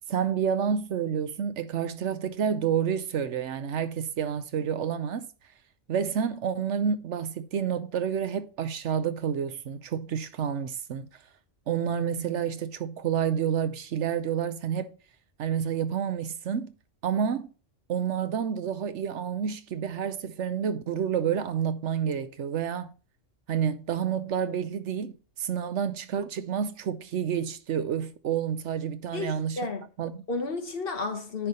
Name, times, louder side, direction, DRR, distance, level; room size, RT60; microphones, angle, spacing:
voice 1, 0.1-5.3 5.9-11.1 11.7-14.9 15.4-16.7 17.0-17.5 17.9-22.9 23.5-29.6 30.0-30.2, right 8 dB, 70° right, 1.0 m, -29 dB
voice 2, 29.1-29.9 30.3-31.5, left 3 dB, 50° left, 1.4 m, -32 dB
10.0 x 3.5 x 5.4 m
omnidirectional pair, 1.3 m